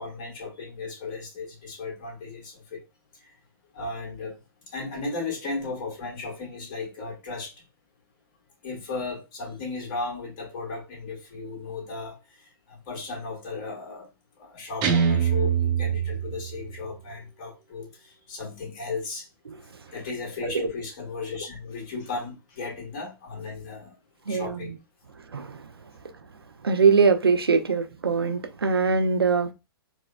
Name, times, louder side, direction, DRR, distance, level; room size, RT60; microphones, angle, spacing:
voice 1, 0.0-2.8 3.7-4.4 4.7-7.5 8.6-14.1 14.4-19.3 19.9-24.0 24.3-24.8, left 3 dB, 40° left, 1.4 m, -35 dB
Guitar, 14.8-16.9, right 7 dB, 35° right, 0.8 m, -24 dB
voice 2, 24.3-24.6 25.3-25.7 26.6-29.5, right 5 dB, 85° right, 0.5 m, -22 dB
4.2 x 2.1 x 2.3 m
figure-of-eight pair, 110°, 12 cm